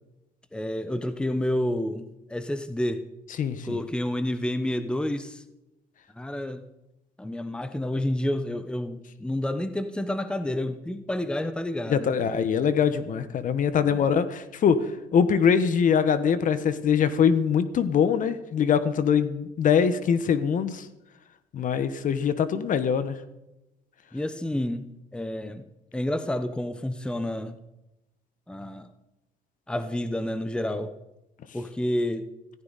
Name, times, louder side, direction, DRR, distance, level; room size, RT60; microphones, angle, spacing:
voice 1, 0.5-3.0 3.6-5.4 6.2-6.6 7.2-12.1 13.8-14.1 24.1-25.6 25.9-27.6 28.5-28.9 29.7-30.9 31.5-32.3, left 1 dB, 5° left, 11 dB, 0.9 m, -29 dB
voice 2, 3.4-3.8 11.9-20.9 21.5-23.2, left 7 dB, 50° left, 13 dB, 1.1 m, -23 dB
16.5 x 15.0 x 4.1 m, 0.93 s
cardioid pair, 110°, 17 cm